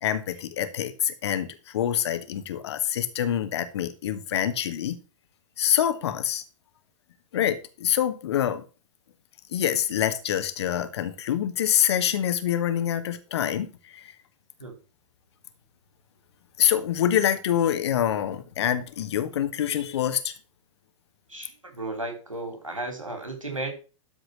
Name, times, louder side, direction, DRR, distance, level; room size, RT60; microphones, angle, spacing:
voice 1, 0.0-5.0 5.6-6.4 7.3-8.6 9.5-14.1 16.6-20.3, left 10 dB, 55° left, 9 dB, 1.6 m, -26 dB
voice 2, 21.3-23.7, right 2 dB, 85° right, 4 dB, 3.3 m, -34 dB
12.5 x 4.9 x 6.0 m, 0.34 s
figure-of-eight pair, 100°, 16 cm